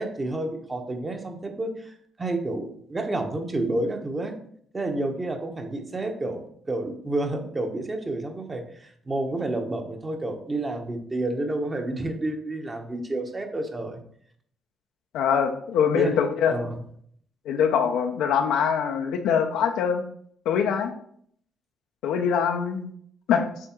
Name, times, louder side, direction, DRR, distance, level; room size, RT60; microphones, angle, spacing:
voice 1, 0.0-1.9 2.2-4.3 4.7-14.0 15.9-16.1 16.5-16.8, right 2 dB, 25° right, 4 dB, 1.2 m, -30 dB
voice 2, 15.1-16.5 17.4-20.0 20.4-20.9 22.0-22.9 23.3-23.5, left 7 dB, 90° left, 5 dB, 0.8 m, -23 dB
7.6 x 3.6 x 4.5 m, 0.64 s
cardioid pair, 90°, 0 cm